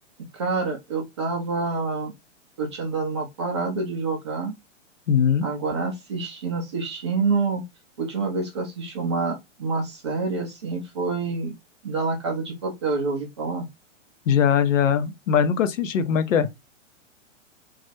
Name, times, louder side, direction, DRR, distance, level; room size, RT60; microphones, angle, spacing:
voice 1, 0.3-2.1 2.6-4.5 5.4-7.6 8.0-11.5 11.8-13.7, right 4 dB, 25° right, 0.3 m, -27 dB
voice 2, 5.1-5.5 14.3-16.5, left 7 dB, 85° left, 0.6 m, -21 dB
2.4 x 2.0 x 2.7 m
hypercardioid pair, 150°, 38 cm